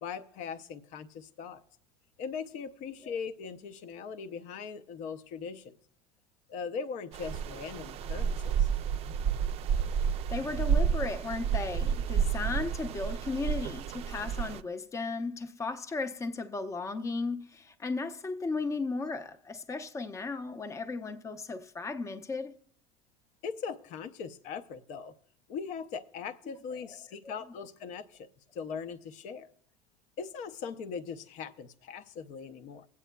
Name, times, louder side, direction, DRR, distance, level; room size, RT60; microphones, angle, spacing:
voice 1, 0.0-1.6 2.2-5.7 6.5-8.7 23.4-25.1 25.5-29.5 30.2-32.9, left 6 dB, 60° left, 0.6 m, -40 dB
sound 1, 7.1-14.6, right 7 dB, 45° right, 0.4 m, -30 dB
voice 2, 10.3-22.6 27.2-27.3, left 3 dB, 20° left, 0.6 m, -35 dB
21.5 x 8.3 x 2.2 m
hypercardioid pair, 90°, 14 cm